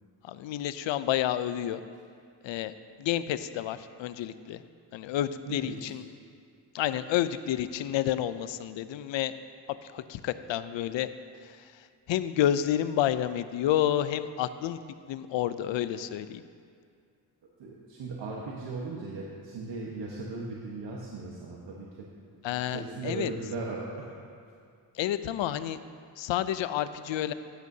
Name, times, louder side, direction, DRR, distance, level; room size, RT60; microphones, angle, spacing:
voice 1, 0.2-1.8 2.4-4.6 4.9-6.0 6.7-9.3 9.8-11.1 11.4-14.8 15.1-16.4 22.4-23.3 24.9-25.8 26.2-27.3, left 11 dB, 85° left, 13 dB, 0.5 m, -30 dB
voice 2, 5.5-5.9 17.6-21.9 22.5-24.0, right 3 dB, 75° right, -4 dB, 1.3 m, -37 dB
14.5 x 9.3 x 2.8 m, 2.3 s
cardioid pair, 100°, 44 cm